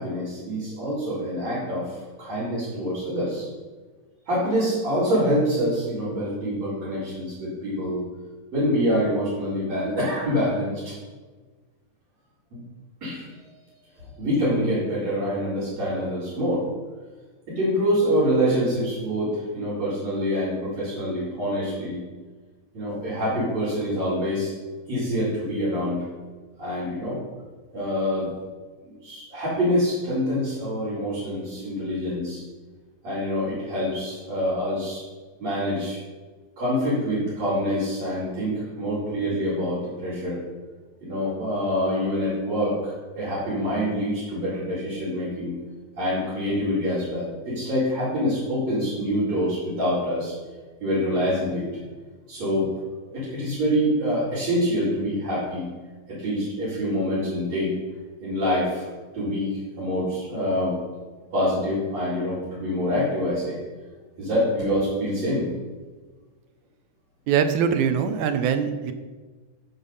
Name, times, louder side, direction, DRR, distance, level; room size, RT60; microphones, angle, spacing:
voice 1, 0.0-3.5 4.3-8.0 8.5-10.9 13.0-13.3 14.2-16.6 17.5-22.0 22.7-24.5 24.9-26.0 26.6-27.2 27.7-28.3 29.0-32.4 33.0-35.0 35.4-36.0 36.6-40.4 41.0-45.5 46.0-50.3 50.8-51.6 52.3-52.7 53.1-55.7 56.1-57.7 58.2-58.9 59.1-60.7 61.3-63.6 64.2-65.5, equal, 65° right, -13 dB, 5.4 m, -26 dB
voice 2, 67.3-68.9, right 7 dB, 85° right, 8 dB, 2.3 m, -22 dB
15.0 x 5.7 x 5.5 m, 1.3 s
omnidirectional pair, 3.3 m